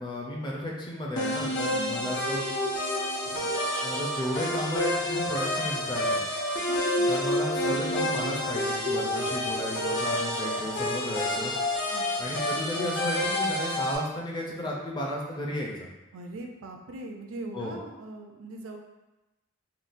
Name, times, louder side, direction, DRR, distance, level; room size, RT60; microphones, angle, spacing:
voice 1, 0.0-2.4 3.3-3.5 3.8-6.2 7.1-11.5 12.2-15.9 17.5-17.7, left 1 dB, 20° left, -2 dB, 0.4 m, -33 dB
sound 1, 1.2-14.0, left 1 dB, 60° left, 0.7 m, -29 dB
voice 2, 1.7-2.2 6.7-7.2 11.9-12.6 16.1-18.8, right 2 dB, 75° right, 3 dB, 0.4 m, -41 dB
3.7 x 2.2 x 2.5 m, 1.0 s
head